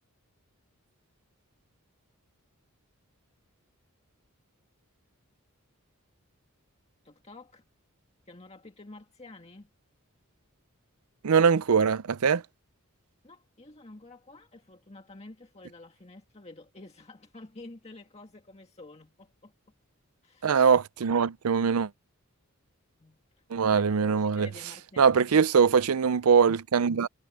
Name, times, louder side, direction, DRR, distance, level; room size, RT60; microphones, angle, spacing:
voice 1, 7.0-7.6 8.3-9.7 13.2-19.5 20.2-20.6 23.0-25.4, left 2 dB, 30° left, 1.9 m, -50 dB
voice 2, 11.2-12.4 20.4-21.9 23.5-24.5 25.0-27.1, right 6 dB, 80° right, 0.5 m, -22 dB
head